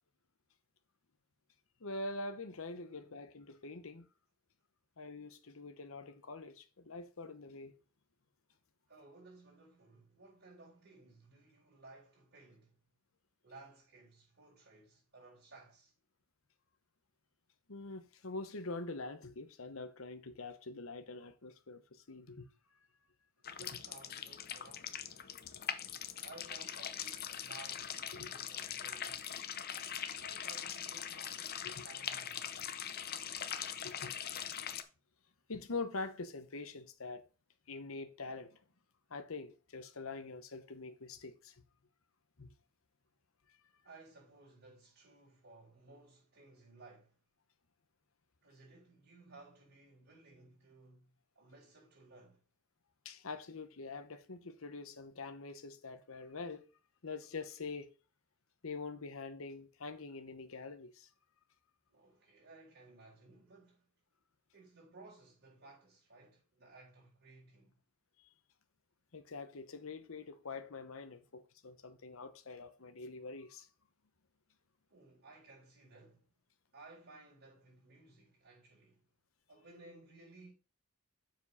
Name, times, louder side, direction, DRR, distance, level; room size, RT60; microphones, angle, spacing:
voice 1, 1.8-4.1 5.0-7.7 17.7-22.5 23.6-23.7 28.1-28.3 31.6-31.8 33.8-34.2 35.5-37.2 37.7-38.6 39.1-41.6 42.4-42.5 53.0-56.7 57.0-57.9 58.6-61.1 69.1-73.7, left 3 dB, 70° left, 1.0 m, -45 dB
voice 2, 2.8-3.2 8.9-12.8 13.4-15.9 23.4-25.3 26.2-29.3 30.2-32.7 43.8-47.2 48.4-52.4 61.9-63.9 64.5-67.8 74.9-76.3 76.7-79.0 79.5-80.5, right 3 dB, 50° right, 4.3 m, -58 dB
sound 1, 23.4-34.8, left 9 dB, 45° left, 0.7 m, -42 dB
7.3 x 4.5 x 5.6 m
head